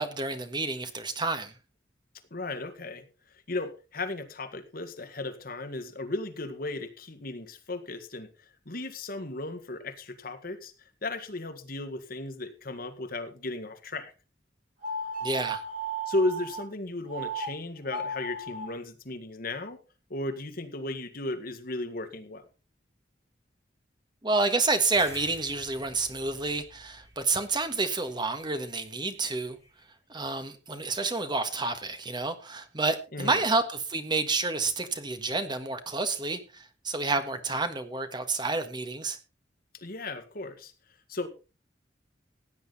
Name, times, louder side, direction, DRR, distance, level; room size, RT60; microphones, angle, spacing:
voice 1, 0.0-1.5 15.2-15.6 24.2-29.6 30.1-39.2, right 3 dB, 25° right, 9 dB, 1.5 m, -29 dB
voice 2, 2.3-3.1 3.5-14.1 16.1-19.8 20.1-22.5 33.1-33.4 39.7-40.7 41.1-41.3, left 2 dB, 55° left, 7 dB, 1.8 m, -35 dB
sound 1, 14.8-16.6 17.1-17.5 17.8-18.7, right 2 dB, 50° right, 7.0 m, -35 dB
sound 2, 24.9-29.8, left 2 dB, 15° left, 5.3 m, -51 dB
16.0 x 9.5 x 4.1 m, 0.31 s
head